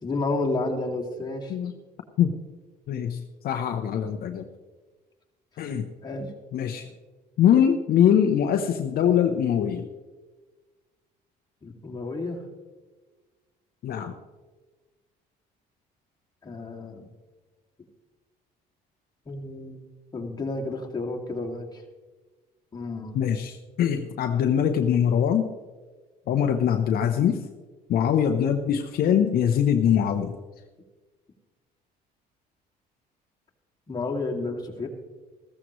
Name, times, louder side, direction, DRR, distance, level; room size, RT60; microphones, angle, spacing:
voice 1, 0.0-1.5 5.6-5.7 6.0-6.3 11.6-12.4 16.4-17.1 19.3-19.8 20.1-21.8 22.7-23.2 33.9-34.9, left 2 dB, 25° left, -1 dB, 2.3 m, -31 dB
voice 2, 2.9-4.5 5.6-5.9 6.5-6.9 7.4-9.9 13.8-14.1 23.1-25.5 26.3-27.4 27.9-30.3, left 9 dB, 60° left, 5 dB, 0.8 m, -23 dB
14.5 x 14.0 x 3.1 m, 1.3 s
cardioid pair, 110°, 17 cm